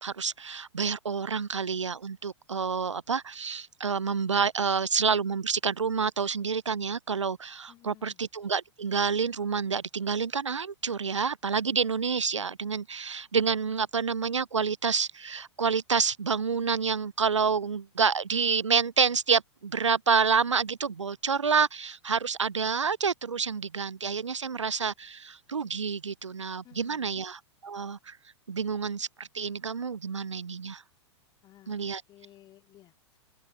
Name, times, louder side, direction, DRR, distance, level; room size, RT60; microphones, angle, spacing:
voice 1, 0.0-28.2 28.5-30.8 31.7-32.0, right 5 dB, 85° right, 0.4 m, -28 dB
voice 2, 7.7-8.2 26.6-27.2 31.4-33.2, left 14 dB, 30° left, 2.8 m, -56 dB
open air
figure-of-eight pair, 100°, 15 cm